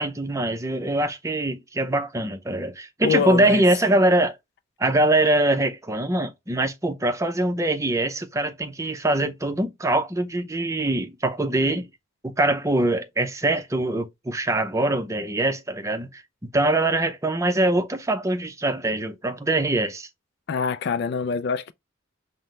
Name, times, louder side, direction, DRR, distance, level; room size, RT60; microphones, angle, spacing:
voice 1, 0.0-4.4 4.8-11.9 12.2-16.2 16.5-20.1, right 1 dB, 15° right, 0.6 m, -23 dB
voice 2, 3.0-3.6 20.5-21.7, left 6 dB, 55° left, 0.3 m, -25 dB
5.6 x 2.1 x 3.1 m
head